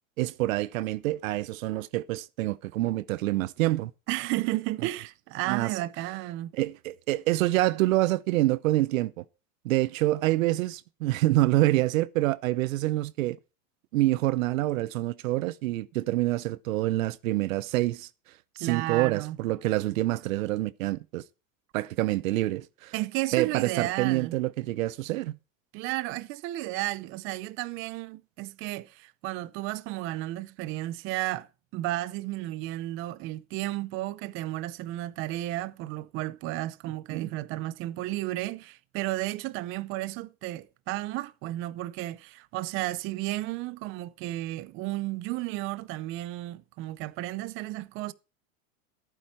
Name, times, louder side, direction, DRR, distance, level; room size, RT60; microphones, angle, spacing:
voice 1, 0.2-3.9 5.5-5.7 6.5-9.2 9.6-13.4 13.9-18.1 18.6-21.2 21.7-22.9 23.3-25.4 37.1-37.3, right 17 dB, 70° right, 0.8 m, -26 dB
voice 2, 4.1-6.5 18.6-19.4 22.9-24.3 25.7-31.5 31.7-48.1, right 17 dB, 30° right, 0.6 m, -33 dB
15.0 x 9.1 x 4.3 m
supercardioid pair, 145°, 41 cm